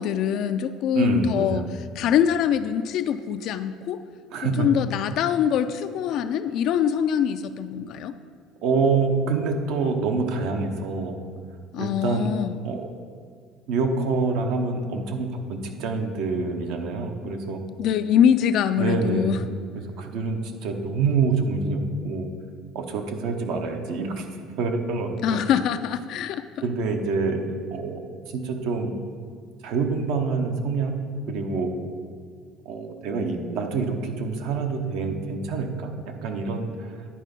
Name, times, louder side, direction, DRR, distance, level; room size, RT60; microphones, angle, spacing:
voice 1, 0.0-1.7 2.0-4.0 4.4-8.1 11.7-12.6 17.8-19.4 25.2-26.4, left 9 dB, 60° left, 10 dB, 0.3 m, -23 dB
voice 2, 0.9-1.6 4.3-4.7 8.6-11.2 11.7-12.3 12.6-12.9 13.7-17.6 18.8-19.4 19.7-22.3 22.7-25.4 26.6-27.4 27.7-28.0 28.3-28.9 29.6-30.9 31.3-31.7 32.6-37.0, right 4 dB, 75° right, 4 dB, 0.9 m, -26 dB
10.0 x 4.1 x 5.2 m, 2.1 s
cardioid pair, 120°, 0 cm